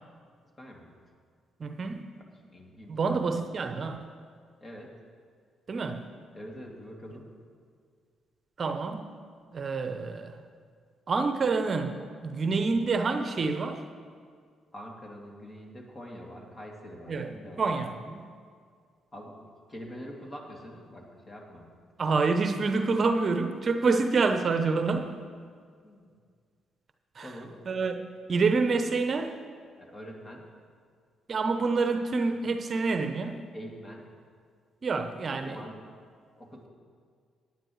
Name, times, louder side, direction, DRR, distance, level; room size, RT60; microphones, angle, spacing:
voice 1, 0.6-0.9 2.2-3.3 4.6-4.9 6.3-7.3 14.7-17.7 19.1-19.3 19.7-21.8 25.8-26.1 27.2-27.6 29.8-30.5 33.5-34.1 35.3-35.8 36.4-36.7, equal, 35° left, -1 dB, 2.6 m, -44 dB
voice 2, 1.6-2.0 2.9-4.0 5.7-6.0 8.6-9.1 9.5-10.3 11.1-13.8 17.1-17.3 17.6-18.2 22.0-25.1 27.2-27.3 27.7-29.3 31.3-33.4 34.8-35.6, right 4 dB, 50° right, 7 dB, 0.8 m, -27 dB
18.0 x 9.7 x 3.2 m, 2.1 s
hypercardioid pair, 45°, 0 cm